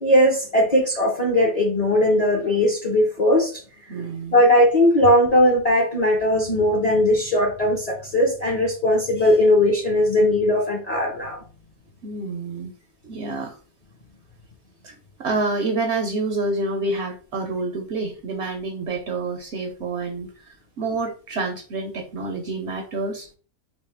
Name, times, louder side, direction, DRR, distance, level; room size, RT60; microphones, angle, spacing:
voice 1, 0.0-3.6 4.3-11.4, left 1 dB, 40° left, -1 dB, 0.6 m, -19 dB
voice 2, 3.9-4.4 12.0-12.7 13.0-13.6 14.8-23.3, right 3 dB, 65° right, 4 dB, 0.7 m, -28 dB
3.0 x 2.6 x 3.3 m, 0.38 s
omnidirectional pair, 1.5 m